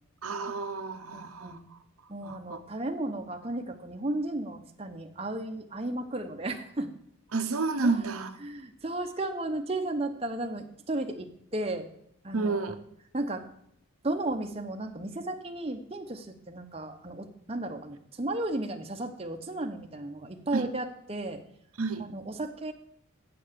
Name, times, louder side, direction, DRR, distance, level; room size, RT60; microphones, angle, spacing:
voice 1, 0.2-1.8 2.2-2.6 7.3-8.3 12.3-12.8 20.5-20.7 21.8-22.1, right 4 dB, 85° right, 7 dB, 0.9 m, -30 dB
voice 2, 1.1-1.6 2.1-6.9 7.8-8.0 8.4-11.9 12.2-12.8 13.1-13.5 14.0-21.4 22.0-22.7, right 2 dB, 25° right, 4 dB, 0.8 m, -34 dB
7.7 x 7.6 x 6.7 m, 0.70 s
head